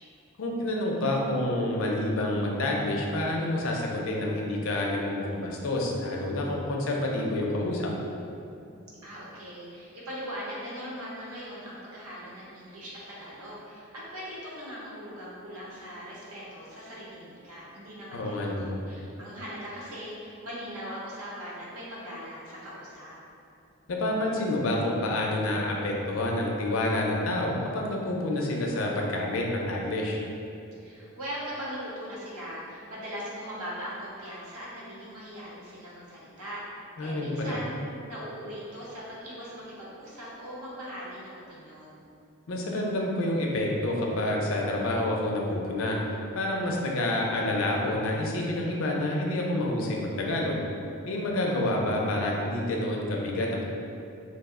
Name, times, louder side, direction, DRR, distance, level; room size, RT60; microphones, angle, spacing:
voice 1, 0.4-7.9 18.1-18.7 23.9-30.2 37.0-37.6 42.5-50.6 51.1-53.6, left 1 dB, 65° left, -1 dB, 0.4 m, -28 dB
voice 2, 9.0-23.1 30.8-37.7 38.1-42.0, equal, 90° right, -6 dB, 0.8 m, -40 dB
2.7 x 2.0 x 3.5 m, 2.6 s
head